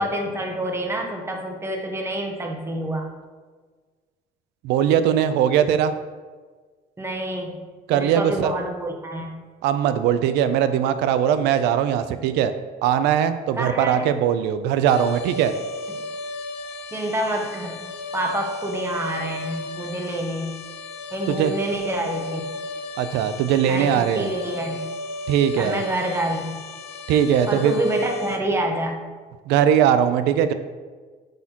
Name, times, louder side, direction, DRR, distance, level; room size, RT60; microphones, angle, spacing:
voice 1, 0.0-3.1 7.0-7.6 7.9-9.3 13.6-14.3 15.9-16.0 16.9-17.9 18.1-20.5 21.1-22.4 23.7-24.8 25.6-26.5 27.5-29.0, right 1 dB, 15° right, 2 dB, 0.9 m, -27 dB
voice 2, 4.6-5.9 7.9-8.5 9.6-12.5 12.8-15.5 21.3-21.5 23.0-24.3 25.3-25.8 27.1-27.8 29.5-30.5, right 9 dB, 90° right, 11 dB, 0.4 m, -20 dB
sound 1, 14.9-28.4, left 2 dB, 75° left, 0.7 m, -34 dB
7.9 x 4.3 x 2.9 m, 1.4 s
cardioid pair, 110°, 17 cm